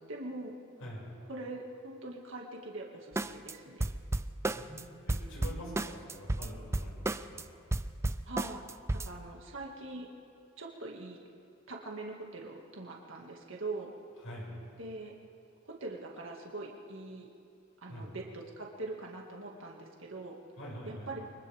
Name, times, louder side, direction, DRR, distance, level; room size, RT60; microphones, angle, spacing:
voice 1, 0.1-0.6 1.3-3.9 8.3-10.1 10.6-11.2 11.7-13.9 14.8-15.1 15.6-17.3 17.8-20.4 20.8-21.2, right 2 dB, 65° right, -1 dB, 2.3 m, -42 dB
sound 1, 3.2-3.5 3.8-4.8 5.1-7.4 7.7-9.1, right 2 dB, 15° right, 0.4 m, -33 dB
voice 2, 4.4-7.4 14.2-14.5 17.9-18.1 20.6-21.2, equal, 85° left, -4 dB, 6.5 m, -45 dB
30.0 x 24.0 x 3.7 m, 2.4 s
head